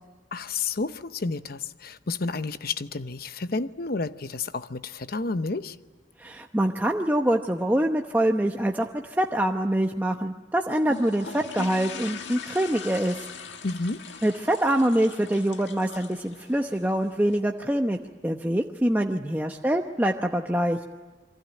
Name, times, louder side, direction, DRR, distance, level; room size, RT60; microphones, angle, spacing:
voice 1, 0.3-5.8 13.6-14.0, left 3 dB, 55° left, 0.8 m, -30 dB
voice 2, 6.2-13.2 14.2-18.0 18.2-20.8, right 1 dB, 10° right, 0.9 m, -25 dB
sound 1, 10.8-17.4, left 5 dB, 80° left, 1.9 m, -41 dB
28.0 x 24.0 x 9.1 m
head